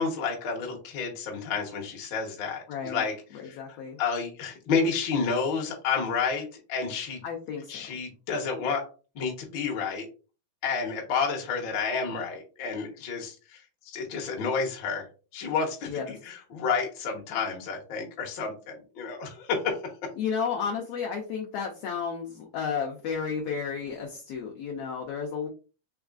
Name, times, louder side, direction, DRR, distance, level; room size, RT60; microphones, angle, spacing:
voice 1, 0.0-3.1 3.4-3.6 4.0-7.2 7.7-8.8 9.1-10.1 10.6-15.0 15.3-19.8, left 5 dB, 60° left, 1 dB, 1.2 m, -30 dB
voice 2, 2.7-3.1 3.3-4.0 7.2-7.9 15.9-16.1 20.1-25.5, left 6 dB, 80° left, 0 dB, 1.4 m, -32 dB
4.8 x 3.5 x 2.4 m, 0.34 s
omnidirectional pair, 3.6 m